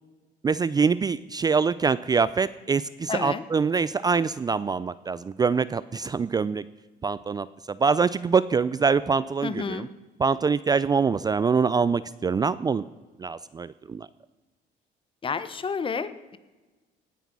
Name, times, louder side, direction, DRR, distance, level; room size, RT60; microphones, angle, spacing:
voice 1, 0.4-6.6 7.0-9.9 10.2-12.8 13.2-14.1, right 5 dB, 25° right, 16 dB, 0.4 m, -24 dB
voice 2, 3.1-3.4 9.4-9.9 15.2-16.4, left 5 dB, 30° left, 14 dB, 1.0 m, -30 dB
18.0 x 9.2 x 6.1 m, 1.2 s
cardioid pair, 110°, 17 cm